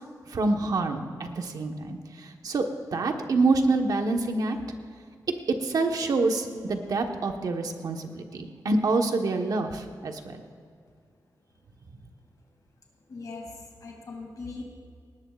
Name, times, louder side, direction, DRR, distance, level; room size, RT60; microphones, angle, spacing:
voice 1, 0.3-4.6 5.6-10.4, right 3 dB, 65° right, 4 dB, 1.2 m, -27 dB
voice 2, 13.1-14.6, left 3 dB, 60° left, 1 dB, 2.5 m, -40 dB
19.0 x 18.5 x 2.4 m, 2.2 s
wide cardioid pair, 140°, 7 cm